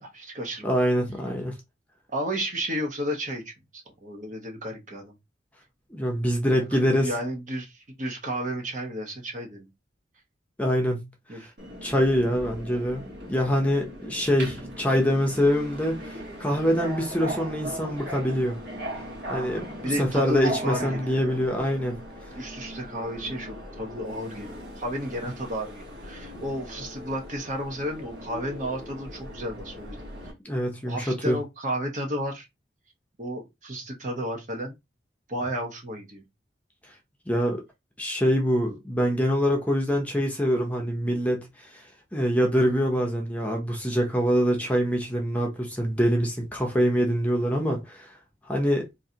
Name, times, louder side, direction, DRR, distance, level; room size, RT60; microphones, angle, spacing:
voice 1, 0.0-0.7 2.1-5.1 6.5-9.7 11.3-11.4 19.8-21.4 22.3-30.0 30.8-32.5 33.2-34.8 35.3-36.2, equal, 45° right, 1.0 m, -33 dB
voice 2, 0.6-1.5 5.9-7.1 10.6-11.0 11.3-11.5 11.8-13.0 13.3-18.6 19.3-22.0 30.4-31.4 37.3-37.6 38.0-41.8 42.1-48.1 48.5-48.9, equal, 10° left, 0.7 m, -25 dB
Subway metro underground, 11.6-30.3, equal, 60° right, 1.4 m, -39 dB
3.8 x 2.6 x 2.8 m
head